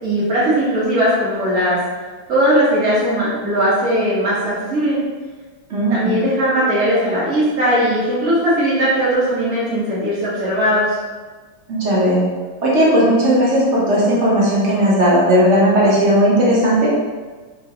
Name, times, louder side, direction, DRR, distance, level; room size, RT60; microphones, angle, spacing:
voice 1, 0.0-1.8 2.3-5.0 5.9-11.0, equal, 40° right, -9 dB, 1.5 m, -18 dB
voice 2, 5.7-6.1 11.7-12.2 12.6-16.9, equal, 55° right, -5 dB, 0.8 m, -15 dB
3.9 x 3.0 x 2.7 m, 1.4 s
omnidirectional pair, 2.2 m